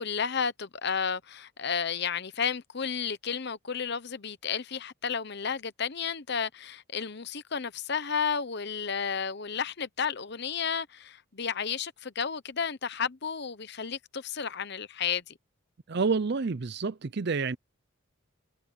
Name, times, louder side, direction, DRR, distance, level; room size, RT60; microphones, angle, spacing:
voice 1, 0.0-15.3, left 6 dB, 55° left, 0.9 m, -32 dB
voice 2, 15.9-17.6, right 4 dB, 50° right, 0.5 m, -28 dB
head